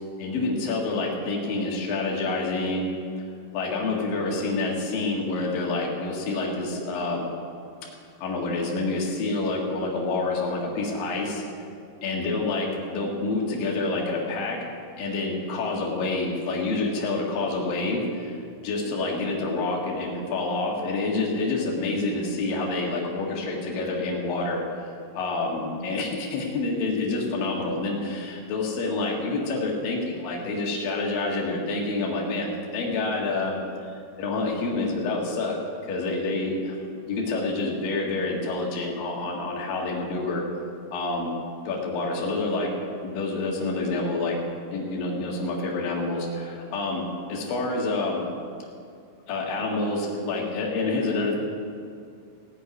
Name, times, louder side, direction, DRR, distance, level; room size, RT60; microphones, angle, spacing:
voice 1, 0.2-2.9 3.5-7.3 8.2-11.4 12.0-14.6 15.0-33.9 34.2-35.6 35.8-36.8 37.1-40.4 40.9-41.4 41.6-42.7 43.0-44.4 44.7-47.0 47.3-48.3 49.3-51.4, left 3 dB, 55° left, -2 dB, 3.3 m, -28 dB
16.0 x 7.0 x 9.4 m, 2.4 s
omnidirectional pair, 5.2 m